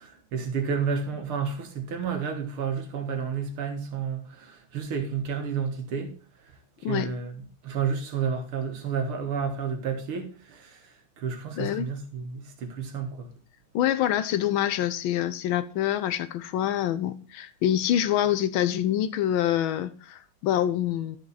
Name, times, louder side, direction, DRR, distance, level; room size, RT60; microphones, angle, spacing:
voice 1, 0.0-6.1 6.4-13.3, right 6 dB, 85° right, 2.3 m, -31 dB
voice 2, 11.6-11.9 13.7-21.2, left 11 dB, 75° left, 1.4 m, -26 dB
12.0 x 5.4 x 4.1 m
omnidirectional pair, 2.3 m